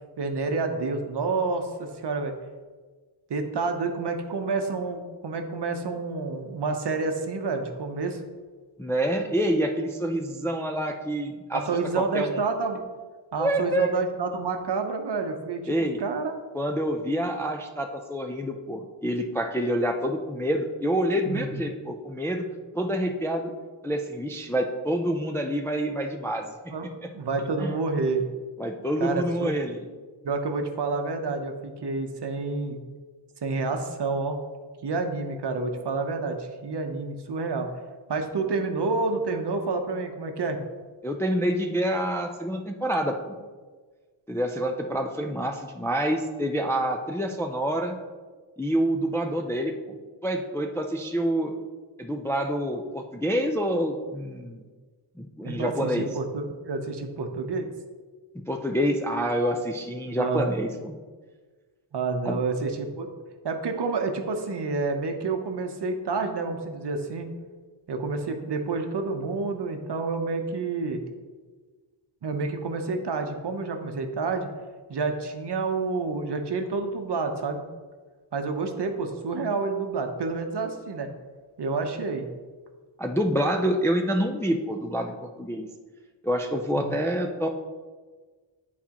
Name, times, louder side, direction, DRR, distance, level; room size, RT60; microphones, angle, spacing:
voice 1, 0.2-2.3 3.3-8.2 11.5-12.8 13.3-16.3 21.2-21.6 26.7-26.9 27.1-28.2 29.0-29.5 30.2-32.8 33.4-34.4 34.8-37.7 38.1-40.6 55.4-57.7 60.1-60.5 61.9-63.1 63.4-67.3 67.9-71.0 72.2-74.5 74.9-77.6 78.3-81.1 81.6-82.3 86.8-86.9, right 4 dB, 55° right, 5 dB, 0.8 m, -29 dB
voice 2, 8.8-11.6 12.0-12.4 13.4-14.0 15.7-16.0 16.5-22.5 22.7-23.5 23.8-26.5 27.6-27.7 28.6-29.8 41.0-43.4 44.3-48.0 48.6-49.9 50.2-51.5 52.0-54.6 55.2-56.1 58.5-61.0 62.3-62.4 83.0-85.7 86.2-87.5, equal, 5° left, 3 dB, 0.3 m, -27 dB
9.5 x 4.2 x 2.9 m, 1.4 s
wide cardioid pair, 120°, 48 cm